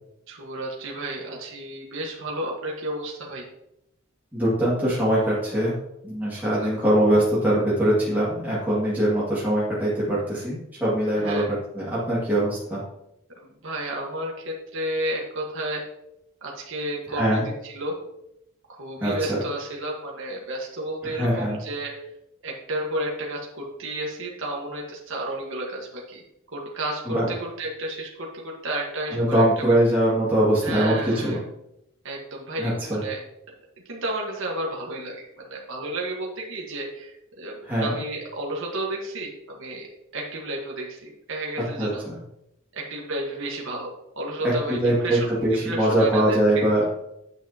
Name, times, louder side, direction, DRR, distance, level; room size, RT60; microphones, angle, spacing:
voice 1, 0.3-3.5 6.3-6.7 11.2-11.5 13.4-15.8 16.4-18.0 18.7-22.1 22.4-26.2 26.5-29.7 30.6-31.4 32.0-33.2 33.9-39.9 40.1-42.0 42.7-43.9 44.1-45.4 45.6-46.6, right 1 dB, 65° right, -2 dB, 1.4 m, -32 dB
voice 2, 4.3-5.7 6.0-12.8 17.1-17.4 19.0-19.4 21.0-21.6 27.1-27.3 29.1-31.4 32.6-33.0 37.6-37.9 41.8-42.2 44.4-46.8, right 1 dB, 10° right, -9 dB, 2.1 m, -22 dB
8.9 x 6.5 x 2.9 m, 0.82 s
head